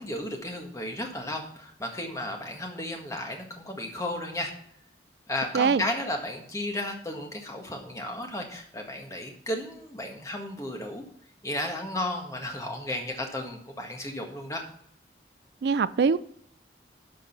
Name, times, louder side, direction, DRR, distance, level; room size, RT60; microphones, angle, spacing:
voice 1, 0.0-4.5 5.3-11.0 11.4-14.6, left 1 dB, 15° left, 1.6 m, -34 dB
voice 2, 5.5-5.9 15.6-16.2, right 5 dB, 65° right, 0.4 m, -22 dB
12.0 x 5.2 x 5.9 m
head